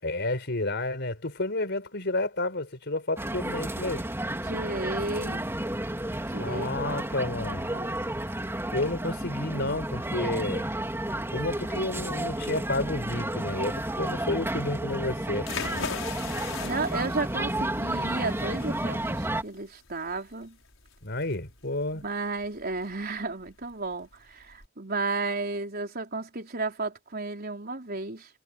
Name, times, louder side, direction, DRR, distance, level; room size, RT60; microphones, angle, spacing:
voice 1, 0.0-4.0 6.4-7.7 8.7-10.7 11.3-15.7 21.0-22.0, left 2 dB, 60° left, 4.5 m, -31 dB
sound 1, 3.2-19.4, right 1 dB, 15° right, 3.5 m, -32 dB
voice 2, 4.4-5.5 6.3-7.4 7.7-8.0 16.6-20.6 21.9-28.3, right 3 dB, 50° right, 4.5 m, -33 dB
sound 2, 15.4-24.7, left 5 dB, 85° left, 5.8 m, -41 dB
head